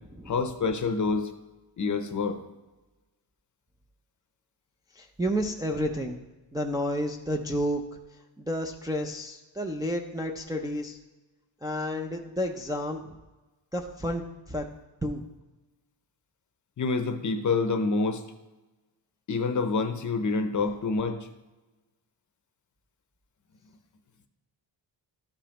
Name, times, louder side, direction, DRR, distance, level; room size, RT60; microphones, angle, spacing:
voice 1, 0.3-1.3 1.8-2.4 16.8-18.2 19.3-21.3, left 4 dB, 45° left, 8 dB, 0.6 m, -27 dB
voice 2, 5.0-6.2 6.5-7.8 8.4-11.0 11.6-13.2 13.7-14.6 15.0-15.2, equal, 10° right, 1 dB, 0.3 m, -31 dB
13.0 x 5.1 x 2.9 m, 1.1 s
wide cardioid pair, 165°, 44 cm